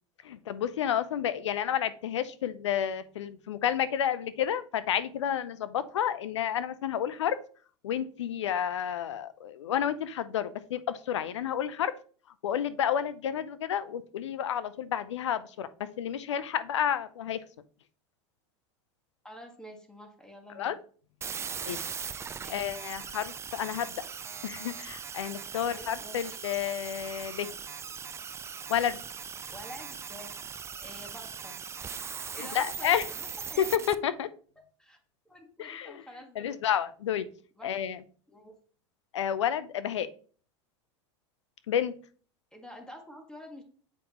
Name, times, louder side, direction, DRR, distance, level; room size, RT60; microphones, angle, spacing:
voice 1, 0.2-7.4 7.8-11.9 12.4-17.4 20.6-20.7 21.6-21.8 22.5-24.0 24.4-27.5 28.7-29.0 32.4-33.0 33.6-34.3 35.6-36.0 36.4-37.3 37.6-38.0 39.1-40.1 41.7-41.9, left 9 dB, 90° left, 15 dB, 0.6 m, -30 dB
voice 2, 19.2-20.7 22.4-22.7 25.7-26.2 29.5-30.3 30.8-31.6 32.3-33.8 34.1-34.2 34.8-35.0 35.2-36.6 37.6-37.7 38.3-38.6 42.5-43.6, equal, 5° left, 4 dB, 1.6 m, -48 dB
sound 1, 21.2-33.9, right 6 dB, 20° right, 0.4 m, -40 dB
7.4 x 5.1 x 2.9 m, 0.43 s
hypercardioid pair, 100°, 15 cm